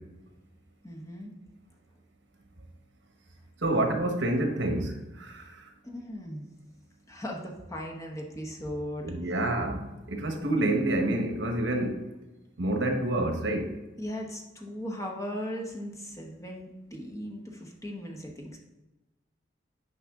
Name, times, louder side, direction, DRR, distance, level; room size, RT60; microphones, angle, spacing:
voice 1, 0.8-1.3 5.8-6.5 7.1-9.3 14.0-18.6, equal, 15° left, 0 dB, 1.0 m, -38 dB
voice 2, 3.6-5.4 9.0-9.8 10.1-12.0 12.6-13.7, right 1 dB, 75° right, 4 dB, 1.2 m, -28 dB
9.5 x 5.2 x 3.7 m, 1.0 s
head